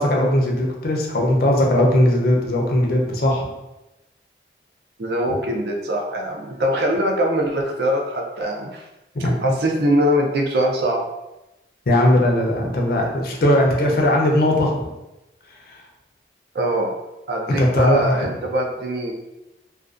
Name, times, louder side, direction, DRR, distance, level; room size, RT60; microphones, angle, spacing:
voice 1, 0.0-3.5 9.1-9.5 11.9-14.9 17.6-18.4, left 1 dB, 55° left, 0 dB, 0.5 m, -19 dB
voice 2, 5.0-8.8 9.4-11.0 16.5-16.9 17.3-19.1, equal, 65° right, 1 dB, 0.4 m, -22 dB
2.3 x 2.2 x 2.4 m, 0.97 s
head